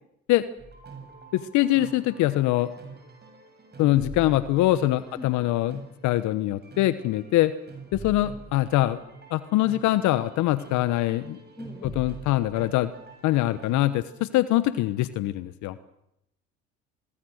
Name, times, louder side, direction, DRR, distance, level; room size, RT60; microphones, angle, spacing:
sound 1, 0.6-14.6, right 4 dB, 30° right, 7.3 m, -45 dB
voice 1, 1.3-2.7 3.8-7.5 7.9-9.0 9.3-11.4 12.0-12.9 13.2-15.8, left 15 dB, 65° left, 14 dB, 1.1 m, -23 dB
voice 2, 11.6-12.0, left 1 dB, 5° left, 4 dB, 4.5 m, -42 dB
25.5 x 22.5 x 6.5 m, 0.79 s
supercardioid pair, 75°, 31 cm